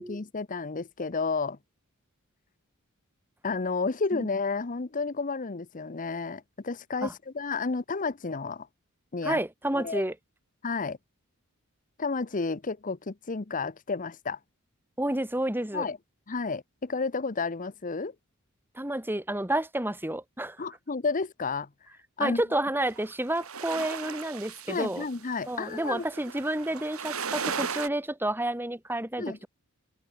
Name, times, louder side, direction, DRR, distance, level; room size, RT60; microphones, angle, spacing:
voice 1, 0.0-1.6 3.4-8.7 9.1-9.4 9.7-10.0 10.6-11.0 12.0-14.4 15.7-16.0 16.3-18.1 20.6-21.7 22.2-22.4 24.7-26.0 29.2-29.5, left 4 dB, 35° left, 0.8 m, -31 dB
voice 2, 9.2-10.1 15.0-15.9 18.7-20.7 22.2-25.0 25.5-29.5, right 1 dB, 10° right, 2.9 m, -30 dB
sound 1, 22.8-27.9, right 6 dB, 70° right, 3.2 m, -36 dB
head